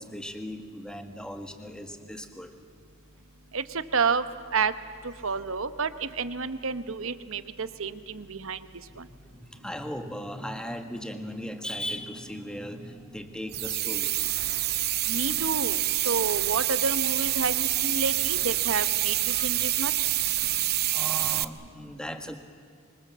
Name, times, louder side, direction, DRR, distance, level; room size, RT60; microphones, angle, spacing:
voice 1, 0.0-2.5 9.5-14.1 20.9-22.4, equal, 5° left, 6 dB, 1.7 m, -37 dB
voice 2, 3.9-4.2 4.5-4.7 5.2-8.6 9.0-9.1 15.1-15.8 16.0-20.1, right 4 dB, 65° right, 12 dB, 1.1 m, -29 dB
sound 1, 13.5-21.4, right 14 dB, 45° right, 0.7 m, -27 dB
26.0 x 24.5 x 7.4 m, 2.3 s
head